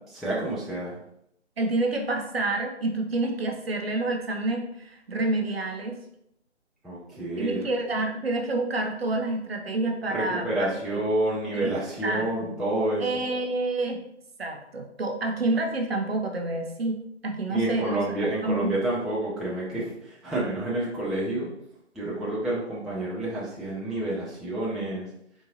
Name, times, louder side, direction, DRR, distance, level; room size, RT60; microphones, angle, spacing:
voice 1, 0.2-1.0 6.8-7.6 10.1-13.0 17.5-21.5 21.9-25.1, right 1 dB, ahead, -8 dB, 0.3 m, -29 dB
voice 2, 1.6-6.0 7.4-11.0 11.5-11.7 12.0-12.5 13.0-14.0 14.4-18.1 18.4-18.8, right 2 dB, 55° right, 2 dB, 0.7 m, -28 dB
3.7 x 2.4 x 2.8 m, 0.76 s
figure-of-eight pair, 155°, 36 cm